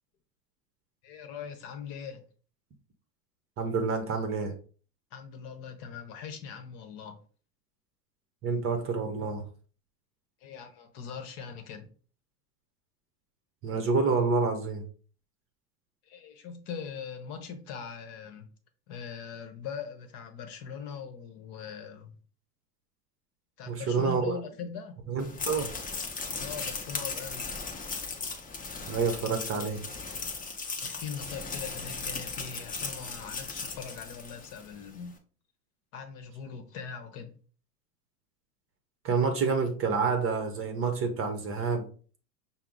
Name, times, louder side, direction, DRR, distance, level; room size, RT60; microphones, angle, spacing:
voice 1, 1.0-2.2 5.1-7.2 10.4-11.9 16.0-18.5 18.9-22.1 23.6-25.0 26.3-27.4 30.8-35.2 35.9-37.4, left 6 dB, 45° left, 0.9 m, -41 dB
voice 2, 3.6-4.5 8.4-9.4 13.6-14.8 23.7-24.4 25.1-25.7 28.9-29.8 39.0-41.9, right 4 dB, 30° right, 0.8 m, -28 dB
sound 1, 25.2-34.7, left 4 dB, 20° left, 0.7 m, -37 dB
5.7 x 2.0 x 3.7 m
hypercardioid pair, 90°, 47 cm